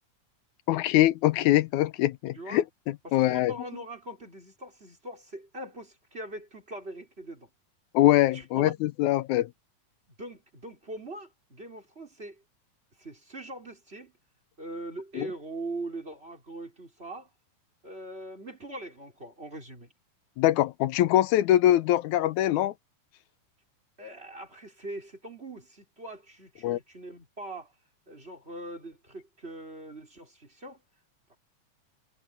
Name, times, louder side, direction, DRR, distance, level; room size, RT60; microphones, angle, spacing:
voice 1, 0.7-2.6 3.1-3.5 7.9-9.5 15.2-15.3 20.4-22.7 26.6-26.8, left 14 dB, 85° left, 2.1 m, -23 dB
voice 2, 3.0-7.5 8.3-8.8 10.2-12.4 13.0-14.1 14.6-17.3 17.8-19.9 24.0-27.7 28.1-30.8 31.3-31.4, right 2 dB, 20° right, 4.4 m, -42 dB
omnidirectional pair, 3.4 m